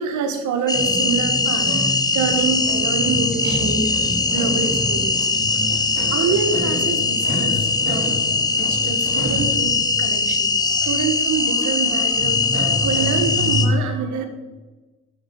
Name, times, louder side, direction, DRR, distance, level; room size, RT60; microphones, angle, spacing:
voice 1, 0.0-4.0 4.3-5.6 6.1-8.2 8.5-12.4 12.7-14.3, right 5 dB, 85° right, 6 dB, 1.3 m, -26 dB
sound 1, 0.7-13.7, left 4 dB, 15° left, 1.2 m, -21 dB
sound 2, 0.7-13.7, equal, 35° right, 3.4 m, -28 dB
7.8 x 6.1 x 6.3 m, 1.2 s
supercardioid pair, 55°, 29 cm